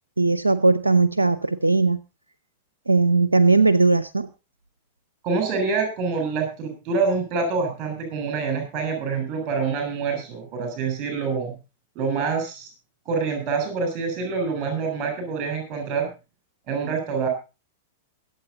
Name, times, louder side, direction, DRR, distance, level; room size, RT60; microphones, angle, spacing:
voice 1, 0.2-2.0 2.9-4.3, right 3 dB, 80° right, 16 dB, 0.6 m, -18 dB
voice 2, 5.2-11.5 12.0-12.7 13.1-16.1 16.7-17.3, right 4 dB, 35° right, 6 dB, 7.5 m, -26 dB
23.5 x 8.5 x 4.0 m, 0.30 s
figure-of-eight pair, 95°, 0 cm